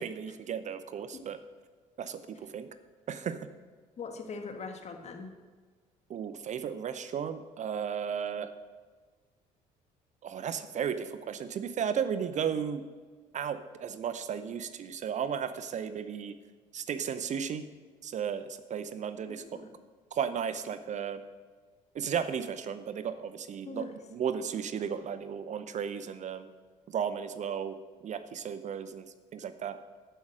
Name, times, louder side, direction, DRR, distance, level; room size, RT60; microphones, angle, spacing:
voice 1, 0.0-1.4 2.0-2.7 3.1-3.5 6.1-8.5 10.2-12.8 13.3-16.4 16.7-17.7 18.0-19.4 20.1-21.2 21.9-23.9 24.1-26.5 26.9-27.8 28.0-29.1 29.3-29.8, right 7 dB, 50° right, 12 dB, 0.7 m, -34 dB
voice 2, 4.0-5.3 19.3-19.7 23.6-23.9, left 4 dB, 45° left, 5 dB, 1.8 m, -41 dB
14.0 x 5.5 x 6.2 m, 1.4 s
supercardioid pair, 75°, 16 cm